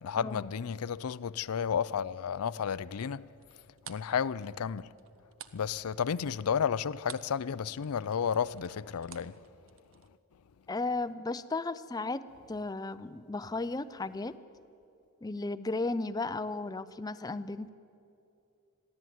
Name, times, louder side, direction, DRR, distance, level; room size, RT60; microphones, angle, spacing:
voice 1, 0.0-3.3 3.9-4.9 5.5-9.4, left 7 dB, 85° left, 0.5 m, -32 dB
sound 1, 3.4-7.4 7.7-10.1, right 9 dB, 60° right, 0.9 m, -51 dB
voice 2, 10.7-14.4 15.2-17.7, left 3 dB, 15° left, 0.4 m, -35 dB
21.5 x 15.0 x 9.3 m
head